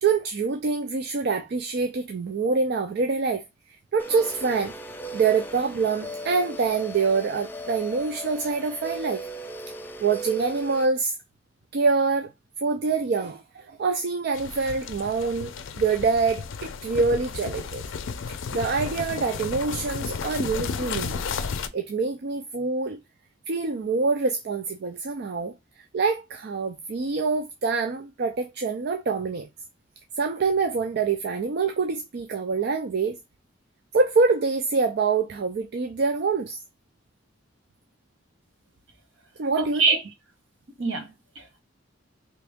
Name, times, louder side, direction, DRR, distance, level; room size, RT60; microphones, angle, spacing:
voice 1, 0.0-3.4 3.9-4.7 5.1-9.2 10.0-11.2 11.7-12.3 12.6-17.8 18.5-21.3 21.7-23.0 23.5-29.5 30.2-33.2 33.9-36.6 39.4-39.8, right 4 dB, 55° right, 0.4 m, -25 dB
sound 1, 4.0-10.9, right 1 dB, 10° left, 0.4 m, -38 dB
sound 2, 14.3-21.7, left 5 dB, 85° left, 0.4 m, -33 dB
voice 2, 39.6-40.0 40.8-41.6, right 4 dB, 70° right, 1.1 m, -25 dB
3.3 x 3.0 x 3.5 m
head